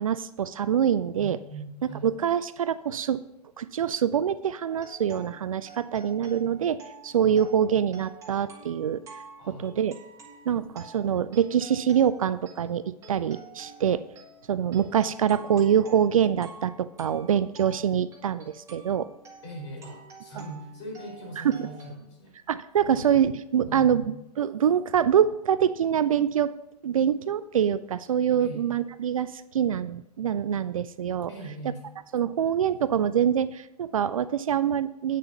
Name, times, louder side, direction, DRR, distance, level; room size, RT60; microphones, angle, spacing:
voice 1, 0.0-1.4 2.0-3.2 3.6-9.0 9.5-9.9 10.5-14.1 14.5-19.1 21.4-21.6 22.5-24.0 24.4-26.5 26.8-31.3 32.1-35.2, right 9 dB, 55° right, 15 dB, 0.4 m, -25 dB
voice 2, 1.2-2.1 7.2-7.4 9.4-9.9 19.4-22.4 22.9-23.1 23.7-24.0 28.4-28.6 31.3-31.8, right 1 dB, 45° left, -1 dB, 4.1 m, -41 dB
sound 1, 4.7-21.9, right 4 dB, 15° right, 1.5 m, -49 dB
9.1 x 6.8 x 5.5 m, 0.82 s
figure-of-eight pair, 110°, 21 cm